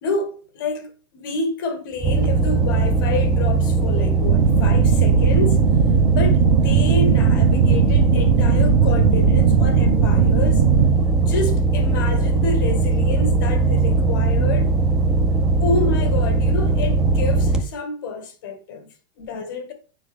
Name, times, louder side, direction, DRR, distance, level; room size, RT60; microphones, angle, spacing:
voice 1, 0.0-5.6 6.1-10.7 11.2-14.7 15.6-19.7, left 3 dB, 50° left, 1.5 m, -28 dB
sound 1, 2.0-17.6, right 3 dB, 5° right, 0.5 m, -19 dB
sound 2, 4.2-10.9, right 7 dB, 65° right, 1.1 m, -19 dB
9.7 x 5.1 x 3.5 m
supercardioid pair, 175°, 13 cm